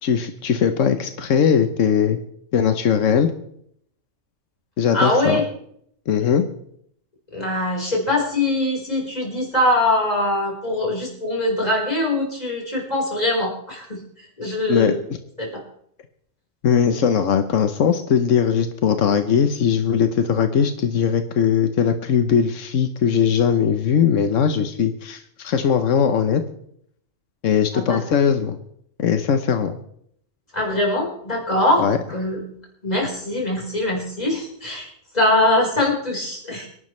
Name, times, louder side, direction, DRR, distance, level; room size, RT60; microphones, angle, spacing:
voice 1, 0.0-2.2 2.5-3.3 4.8-5.4 6.1-6.4 14.7-14.9 16.6-26.4 27.4-28.6 29.0-29.8 31.8-32.0, left 7 dB, 90° left, 8 dB, 1.3 m, -19 dB
voice 2, 4.9-5.4 7.3-14.0 14.4-15.0 15.4-15.6 27.7-28.0 30.5-32.4 32.8-34.9 35.1-36.7, left 1 dB, 30° left, -2 dB, 4.6 m, -22 dB
24.5 x 11.0 x 3.2 m, 0.68 s
omnidirectional pair, 1.3 m